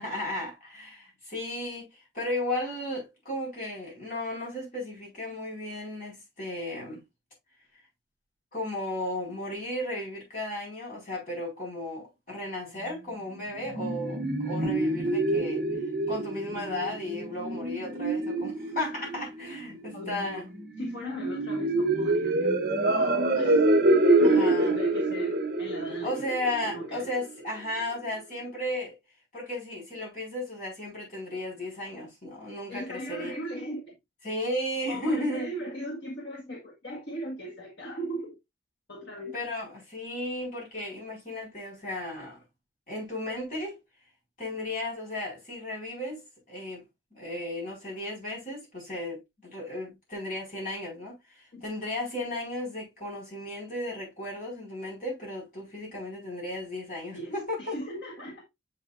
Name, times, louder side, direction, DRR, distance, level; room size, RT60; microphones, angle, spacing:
voice 1, 0.0-7.0 8.5-15.6 16.1-20.5 24.2-24.8 26.0-29.0 29.3-33.3 34.2-35.5 39.3-42.4 42.9-43.8 44.4-46.2 46.5-46.8 47.1-51.1 51.6-57.8, left 1 dB, 45° left, 4.5 m, -34 dB
sound 1, 13.3-27.3, right 2 dB, 55° right, 1.1 m, -26 dB
voice 2, 19.7-20.5 20.8-23.7 24.2-26.1 26.6-27.1 32.7-33.9 34.9-38.3 38.9-39.4 51.5-51.6 57.1-57.3 57.6-58.4, equal, 70° left, 1.4 m, -38 dB
7.1 x 5.9 x 2.4 m
head